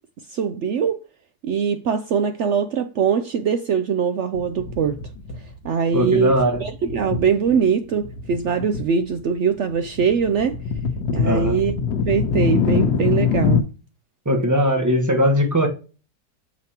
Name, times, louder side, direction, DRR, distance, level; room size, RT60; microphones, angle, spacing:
voice 1, 0.3-1.0 1.4-5.0 5.6-6.3 6.6-10.6 11.1-11.7 12.0-13.6, right 6 dB, 75° right, 0.6 m, -22 dB
sound 1, 4.3-5.7 5.9-7.6 7.9-8.8 9.1-13.6, left 5 dB, 75° left, 1.4 m, -24 dB
voice 2, 5.9-6.6 11.2-11.6 14.2-15.7, equal, 10° right, 1.2 m, -19 dB
7.1 x 5.2 x 2.9 m
omnidirectional pair, 1.8 m